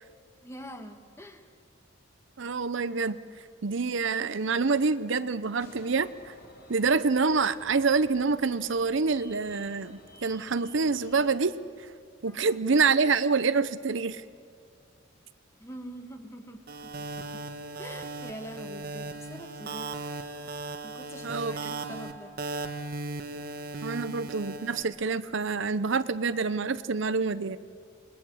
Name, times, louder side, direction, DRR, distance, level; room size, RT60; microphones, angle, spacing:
voice 1, 0.4-1.5 12.2-12.4 15.6-17.1 17.3-17.4 17.8-20.0 20.8-22.3, equal, 15° left, 6 dB, 1.6 m, -44 dB
voice 2, 2.4-6.3 6.7-11.9 12.2-14.2 21.2-21.5 23.8-27.6, right 4 dB, 60° right, 13 dB, 0.7 m, -27 dB
sound 1, 5.6-11.3, left 1 dB, 50° left, 3.9 m, -53 dB
sound 2, 16.7-24.8, right 2 dB, 45° right, 1.4 m, -37 dB
28.5 x 21.0 x 7.8 m, 2.2 s
head